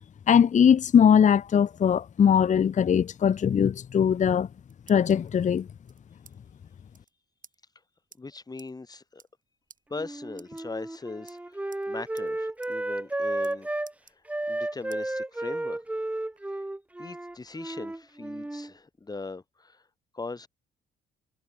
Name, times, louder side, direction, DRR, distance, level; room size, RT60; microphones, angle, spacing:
voice 1, 0.3-4.5 4.9-5.7, left 8 dB, 40° left, 0.6 m, -20 dB
sound 1, 4.6-5.3 5.9-6.4 6.6-6.7 6.9-7.1 7.4-7.6 8.1-8.2 8.6-8.7 9.1-9.4 9.7-9.8 10.3-11.0 11.3-11.9 12.2-12.3 12.6-12.7 13.0-13.5 13.8-14.6 14.9-15.0 15.5-16.4, right 6 dB, 40° right, 5.7 m, -55 dB
voice 2, 8.2-9.2 9.9-13.7 14.5-15.8 17.0-19.8 20.1-20.5, left 3 dB, 20° left, 1.2 m, -40 dB
Wind instrument woodwind instrument, 9.9-13.9 14.3-18.7, right 1 dB, 5° right, 0.6 m, -33 dB
cardioid pair, 90°, 20 cm